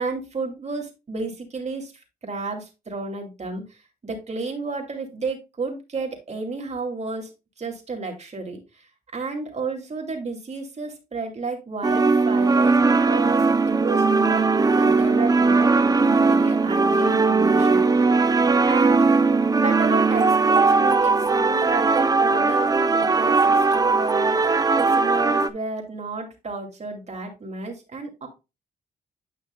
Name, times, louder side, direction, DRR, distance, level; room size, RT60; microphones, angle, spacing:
voice 1, 0.0-1.9 2.2-7.3 7.6-18.3 18.6-19.1 19.6-28.3, right 3 dB, 40° right, 2 dB, 2.5 m, -32 dB
sound 1, 11.8-25.5, right 4 dB, 20° right, 0.5 m, -19 dB
9.8 x 5.7 x 2.3 m, 0.27 s
cardioid pair, 85°, 17 cm